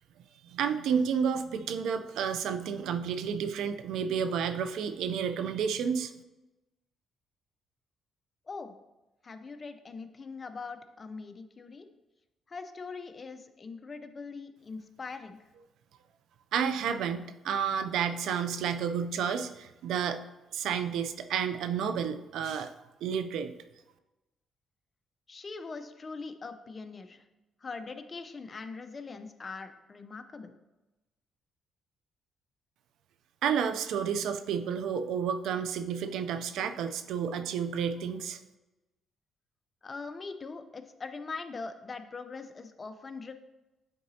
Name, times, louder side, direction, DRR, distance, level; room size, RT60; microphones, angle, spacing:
voice 1, 0.4-6.1 16.5-20.2 20.5-22.7 23.0-23.5 33.4-38.4, right 7 dB, 80° right, 9 dB, 0.4 m, -31 dB
voice 2, 9.2-11.9 12.5-15.4 25.3-27.2 27.6-30.6 39.8-43.3, left 4 dB, 35° left, 8 dB, 0.6 m, -42 dB
9.5 x 3.9 x 2.8 m, 1.0 s
cardioid pair, 90°, 0 cm